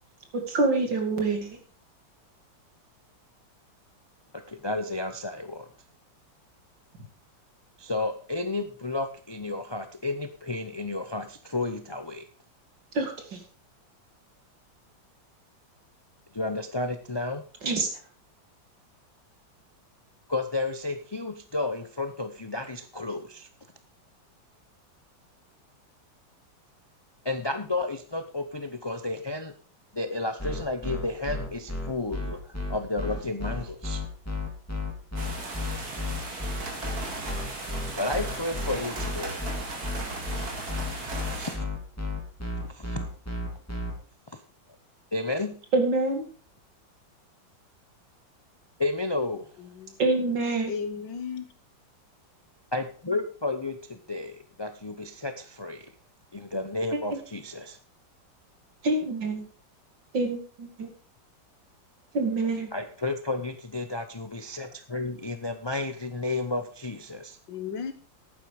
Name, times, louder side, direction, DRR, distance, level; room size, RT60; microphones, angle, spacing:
voice 1, 0.5-1.6 12.9-13.4 17.6-17.9 45.7-46.2 50.0-50.7 56.9-57.0 58.8-59.4 60.1-60.9 62.1-62.7, right 3 dB, 70° right, 3.1 m, -26 dB
voice 2, 4.3-5.7 7.8-12.3 16.3-17.4 20.3-23.5 27.2-29.5 29.9-34.0 37.9-39.4 40.9-41.0 41.3-41.7 42.7-43.0 44.3-44.4 45.1-45.6 48.8-49.5 52.7-55.9 56.3-57.8 62.7-67.4, left 2 dB, 35° left, 0.4 m, -32 dB
sound 1, 30.4-43.9, left 2 dB, 10° left, 2.9 m, -32 dB
sound 2, 35.2-41.6, right 2 dB, 50° right, 3.1 m, -36 dB
voice 3, 49.6-50.0 50.7-51.5 67.5-67.9, left 6 dB, 70° left, 2.1 m, -34 dB
11.5 x 9.3 x 4.9 m
omnidirectional pair, 2.1 m